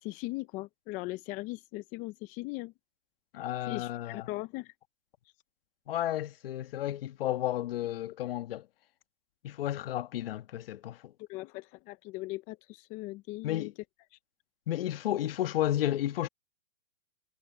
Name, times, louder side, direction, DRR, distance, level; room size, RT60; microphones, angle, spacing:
voice 1, 0.0-2.7 3.7-4.7 11.2-13.7 14.1-14.2, left 20 dB, 20° left, 0.7 m, -39 dB
voice 2, 3.3-4.3 5.9-8.7 9.4-11.1 13.4-13.7 14.7-16.3, left 13 dB, 55° left, 1.8 m, -32 dB
hypercardioid pair, 145°, 35 cm